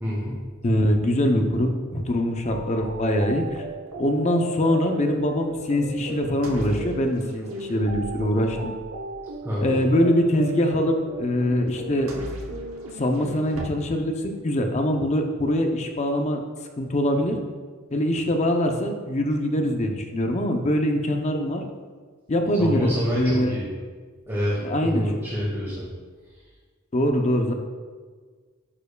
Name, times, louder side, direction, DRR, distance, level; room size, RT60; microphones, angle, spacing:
voice 1, 0.0-0.4 9.4-9.8 22.6-23.7 24.3-25.9, equal, 15° right, -7 dB, 1.2 m, -27 dB
voice 2, 0.6-3.6 4.0-8.7 9.6-12.1 13.0-14.1 14.4-16.4 16.8-17.4 17.9-21.6 22.3-23.5 24.6-25.1 26.9-27.5, equal, 35° left, 4 dB, 0.6 m, -23 dB
sound 1, 2.4-13.7, right 1 dB, 80° right, 0.9 m, -36 dB
9.7 x 4.6 x 2.3 m, 1.5 s
head